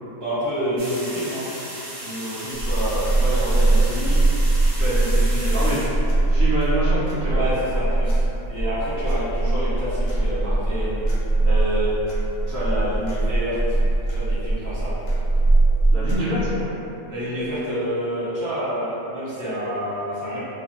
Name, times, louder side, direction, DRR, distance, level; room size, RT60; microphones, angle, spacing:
voice 1, 0.2-1.5 2.0-4.3 4.8-6.0 7.3-8.2 8.5-10.9 11.4-11.9 12.5-13.8 14.1-14.9 17.1-20.4, equal, 15° right, -12 dB, 0.7 m, -28 dB
sound 1, 0.8-6.6, right 1 dB, 60° right, 0.7 m, -36 dB
sound 2, 2.6-16.1, right 2 dB, 70° left, 0.9 m, -21 dB
voice 2, 6.3-7.4 15.9-16.7, equal, 80° right, -11 dB, 0.4 m, -25 dB
2.6 x 2.1 x 2.8 m, 2.9 s
omnidirectional pair, 1.5 m